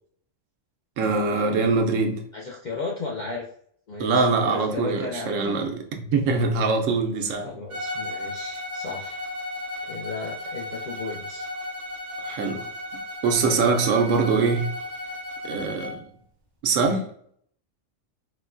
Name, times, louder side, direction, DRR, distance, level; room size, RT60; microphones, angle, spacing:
voice 1, 1.0-2.2 4.0-5.7 6.1-7.5 12.2-12.7 13.2-14.7 15.4-16.0 16.6-17.0, right 4 dB, 80° right, 1.0 m, -23 dB
voice 2, 2.3-3.5 3.9-5.6 7.4-9.2 9.8-11.5, left 3 dB, 65° left, 0.4 m, -35 dB
Bowed string instrument, 7.7-16.0, left 1 dB, 45° right, 0.6 m, -34 dB
4.0 x 2.2 x 2.4 m
omnidirectional pair, 1.3 m